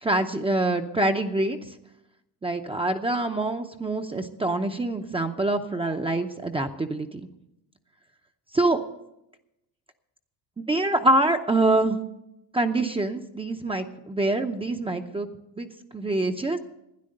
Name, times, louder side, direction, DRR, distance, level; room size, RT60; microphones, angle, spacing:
voice 1, 0.0-1.6 2.4-7.3 8.5-8.8 10.7-12.0 12.5-15.3 15.6-15.7 15.9-16.6, right 2 dB, 15° right, 4 dB, 0.7 m, -25 dB
12.5 x 9.7 x 6.5 m, 0.87 s
cardioid pair, 100°, 42 cm